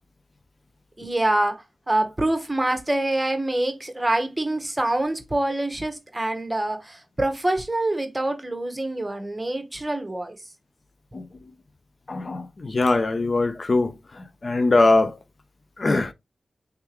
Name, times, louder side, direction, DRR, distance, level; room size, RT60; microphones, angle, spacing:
voice 1, 1.0-10.4, right 1 dB, 20° right, 1.1 m, -25 dB
voice 2, 12.1-15.1 15.8-16.1, left 2 dB, 50° left, 0.5 m, -22 dB
3.5 x 3.4 x 3.0 m
cardioid pair, 45°, 0 cm